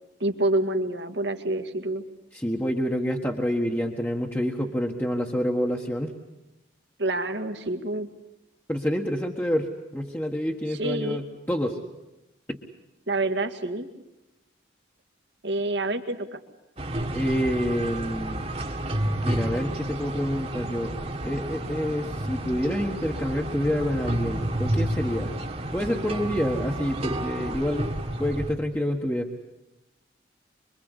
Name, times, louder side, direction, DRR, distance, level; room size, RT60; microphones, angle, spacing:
voice 1, 0.2-2.0 7.0-8.1 10.7-11.2 13.1-13.9 15.4-16.4, right 2 dB, 70° right, 6 dB, 2.2 m, -27 dB
voice 2, 2.3-6.1 8.7-11.8 12.5-12.6 17.1-18.4 19.2-20.9 21.2-25.3 25.7-27.9 28.2-29.3, equal, 10° left, 0 dB, 1.6 m, -27 dB
sound 1, 16.8-28.5, right 1 dB, 35° right, 1.9 m, -30 dB
25.5 x 24.0 x 8.2 m, 0.96 s
head